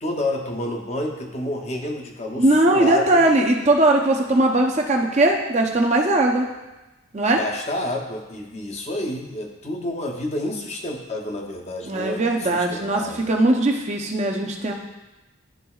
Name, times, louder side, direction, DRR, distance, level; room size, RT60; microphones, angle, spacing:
voice 1, 0.0-3.2 7.4-13.2, left 1 dB, 30° left, 1 dB, 0.7 m, -29 dB
voice 2, 2.4-6.5 7.1-7.4 11.9-14.7, right 2 dB, 35° right, 1 dB, 0.7 m, -19 dB
11.5 x 4.0 x 2.3 m, 1.0 s
head